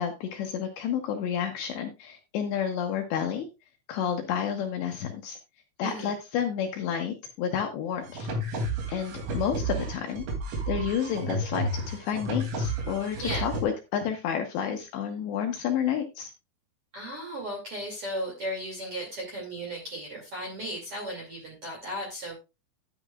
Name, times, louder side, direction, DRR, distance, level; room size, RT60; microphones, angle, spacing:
voice 1, 0.0-3.5 3.9-5.4 5.8-8.3 8.9-10.3 10.7-16.3, left 8 dB, 75° left, 4 dB, 2.7 m, -30 dB
voice 2, 5.8-6.1 13.2-13.4 16.9-22.4, equal, 40° right, -1 dB, 2.4 m, -35 dB
sound 1, 8.0-13.6, right 1 dB, 75° right, 5.1 m, -32 dB
10.5 x 10.0 x 2.4 m, 0.26 s
omnidirectional pair, 5.9 m